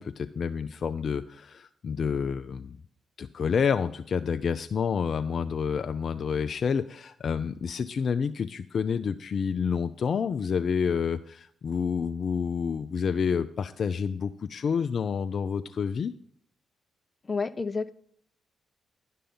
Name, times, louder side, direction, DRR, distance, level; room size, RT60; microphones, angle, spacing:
voice 1, 0.0-2.8 3.2-16.1, left 6 dB, 60° left, 9 dB, 0.5 m, -29 dB
voice 2, 17.3-17.9, left 4 dB, 35° left, 13 dB, 0.8 m, -29 dB
11.5 x 5.5 x 5.4 m, 0.62 s
hypercardioid pair, 45°, 0 cm